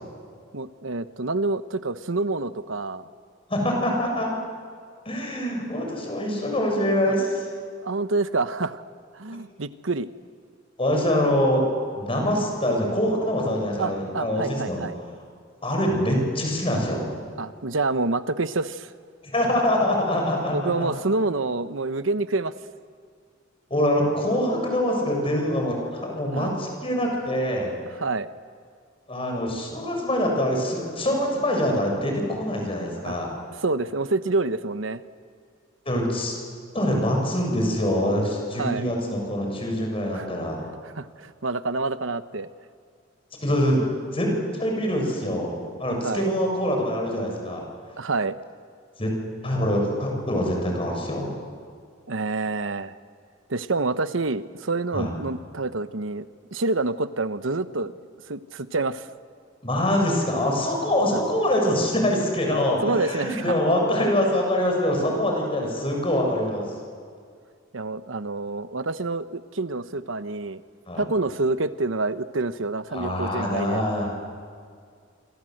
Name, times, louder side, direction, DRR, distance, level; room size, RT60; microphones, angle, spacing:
voice 1, 0.5-3.0 7.1-7.2 7.8-8.8 9.1-10.1 13.8-15.0 17.4-18.9 20.5-22.5 26.3-26.5 27.9-28.3 33.0-33.2 33.6-35.0 38.6-38.8 40.1-40.3 40.8-42.5 46.0-46.3 48.0-48.4 52.1-53.0 53.5-56.3 56.5-57.9 58.3-59.1 61.1-61.2 62.8-63.5 67.7-70.6 71.0-73.8, right 3 dB, 80° right, 12 dB, 1.1 m, -27 dB
voice 2, 3.5-4.3 5.1-7.5 10.8-11.6 11.9-14.8 15.6-17.1 19.3-20.9 23.7-27.7 29.1-33.3 35.9-36.4 36.7-40.6 43.4-43.8 44.1-47.6 49.0-49.1 49.4-51.3 54.9-55.1 59.6-66.7 70.9-71.1 72.9-74.1, left 1 dB, 30° left, 1 dB, 7.3 m, -24 dB
26.5 x 26.5 x 8.0 m, 2.1 s
head